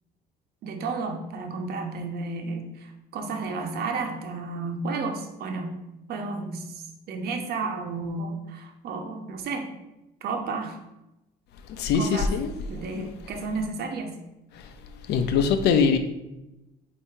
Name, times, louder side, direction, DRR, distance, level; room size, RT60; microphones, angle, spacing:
voice 1, 0.6-5.8 6.1-9.7 10.2-10.8 11.9-12.3 12.7-14.1, right 3 dB, 70° right, 4 dB, 1.0 m, -32 dB
voice 2, 11.7-12.5 13.0-13.1 15.1-16.0, left 6 dB, 80° left, 8 dB, 0.7 m, -22 dB
8.3 x 2.9 x 4.4 m, 0.95 s
cardioid pair, 110°, 17 cm